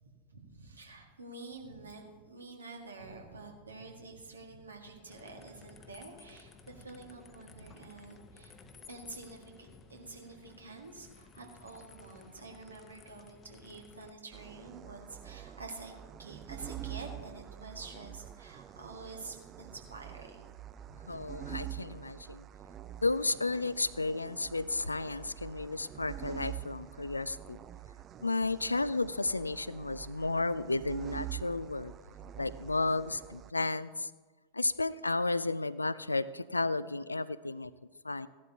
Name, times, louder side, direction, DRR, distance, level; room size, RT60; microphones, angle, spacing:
voice 1, 0.0-8.5 8.9-15.9 16.2-20.6 20.9-21.0 25.1-25.2 25.9-26.0, right 3 dB, 75° right, 2 dB, 1.8 m, -48 dB
sound 1, 5.1-14.1, left 5 dB, 25° left, 0.8 m, -55 dB
sound 2, 14.3-33.5, right 12 dB, 30° right, 0.4 m, -46 dB
voice 2, 21.1-22.4 23.0-27.6 28.2-31.9 32.2-34.1 34.5-37.7 38.0-38.3, left 3 dB, 80° left, 16 dB, 0.3 m, -33 dB
16.0 x 11.5 x 2.9 m, 1.4 s
figure-of-eight pair, 90°, 0 cm